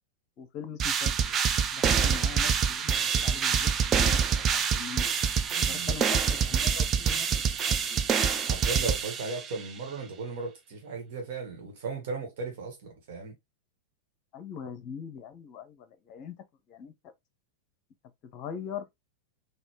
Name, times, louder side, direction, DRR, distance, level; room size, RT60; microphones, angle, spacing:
voice 1, 0.4-1.4 1.7-5.2 5.7-8.0 14.3-16.4 16.7-17.1 18.2-18.9, left 7 dB, 40° left, 0.7 m, -42 dB
sound 1, 0.8-9.6, right 7 dB, 25° right, 0.5 m, -26 dB
voice 2, 1.8-2.2 5.5-5.9 8.5-13.3, right 4 dB, 50° right, 1.5 m, -36 dB
4.2 x 2.5 x 3.1 m
figure-of-eight pair, 90°, 0 cm